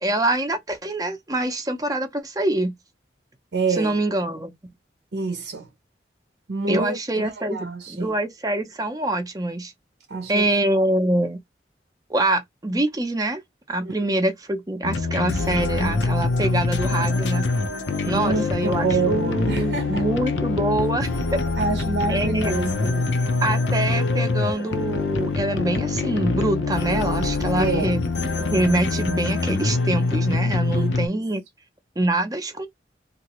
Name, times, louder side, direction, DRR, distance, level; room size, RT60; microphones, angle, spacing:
voice 1, 0.0-2.7 3.7-4.5 6.7-9.7 10.3-11.4 12.1-13.4 13.7-17.5 18.0-21.4 22.1-22.5 23.4-28.0 28.5-31.4 32.0-32.7, right 1 dB, 20° right, 0.5 m, -25 dB
voice 2, 3.5-4.0 5.1-5.7 6.5-8.1 10.1-10.5 13.8-13.9 18.1-20.1 21.6-23.2 27.5-28.0 30.7-31.2, right 3 dB, 70° right, 0.6 m, -27 dB
sound 1, 14.8-31.1, left 3 dB, 85° left, 0.6 m, -24 dB
2.8 x 2.5 x 2.9 m
head